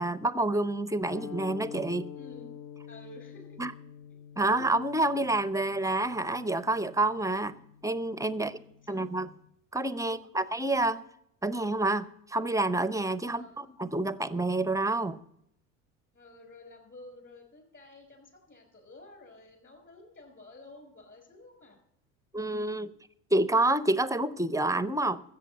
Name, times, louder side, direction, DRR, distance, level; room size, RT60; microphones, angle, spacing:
voice 1, 0.0-2.1 3.6-3.7 4.4-8.5 8.9-9.3 9.7-11.0 11.4-15.2 22.3-22.9 23.3-25.2, right 2 dB, 10° right, 0.7 m, -28 dB
sound 1, 1.1-9.5, left 8 dB, 50° left, 0.9 m, -47 dB
voice 2, 2.1-2.5 2.9-3.6 8.3-9.2 10.0-10.4 13.3-13.7 16.1-21.8 22.3-22.5 22.8-22.9, left 2 dB, 30° left, 5.6 m, -52 dB
13.5 x 8.1 x 6.8 m
hypercardioid pair, 80°, 39 cm